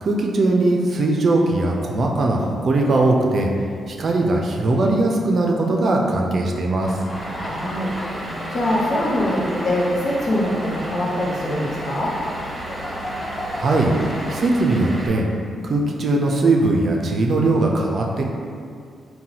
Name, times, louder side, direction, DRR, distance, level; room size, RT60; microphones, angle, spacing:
voice 1, 0.0-3.5 3.9-7.0 13.5-15.3 15.6-18.3, right 2 dB, 60° right, 0 dB, 0.4 m, -20 dB
sound 1, 6.8-14.5, left 1 dB, 35° left, 0.4 m, -34 dB
Vehicle / Engine, 7.1-15.1, right 1 dB, 30° right, 1.1 m, -33 dB
voice 2, 7.3-7.9 8.5-12.2, left 1 dB, 65° left, -5 dB, 0.7 m, -23 dB
3.8 x 2.2 x 2.8 m, 2.3 s
supercardioid pair, 55°, 0 cm